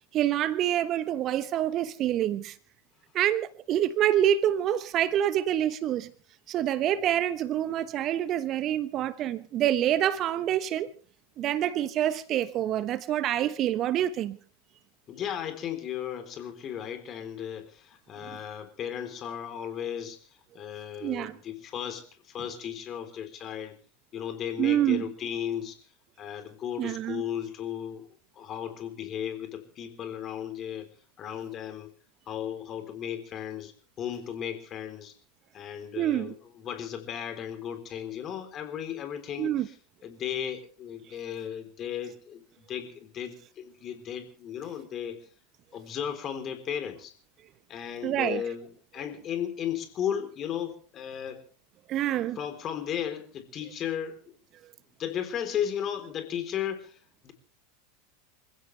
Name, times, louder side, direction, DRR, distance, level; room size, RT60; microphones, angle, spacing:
voice 1, 0.1-2.5 3.1-6.1 6.5-10.9 11.4-14.4 18.2-18.4 21.0-21.4 24.6-25.1 26.8-27.2 36.0-36.3 39.4-39.7 48.0-48.4 51.9-52.4, right 11 dB, 40° right, 1.1 m, -27 dB
voice 2, 15.1-20.2 20.5-23.7 24.1-25.8 26.2-28.0 28.4-30.9 31.2-31.9 32.3-33.7 34.0-35.1 35.5-36.3 36.6-39.6 40.0-42.4 42.7-45.2 45.7-47.1 47.7-48.7 48.9-51.4 52.4-54.2 55.0-56.9 57.2-57.3, left 9 dB, 35° left, 3.8 m, -35 dB
27.5 x 16.0 x 3.4 m
figure-of-eight pair, 85°, 0 cm